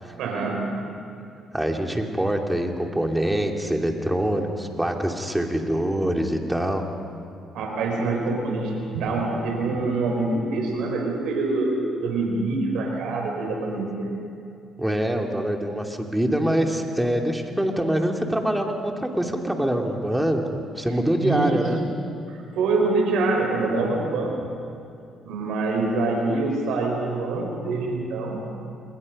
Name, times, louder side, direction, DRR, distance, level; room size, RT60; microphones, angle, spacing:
voice 1, 0.2-0.7 7.5-14.1 21.2-21.6 22.3-24.3 25.3-28.3, right 3 dB, 85° right, 1 dB, 5.2 m, -25 dB
voice 2, 1.5-6.8 14.8-20.4 20.8-21.8, right 1 dB, 5° right, 2 dB, 2.6 m, -24 dB
28.0 x 21.0 x 5.4 m, 2.5 s
cardioid pair, 85°, 0 cm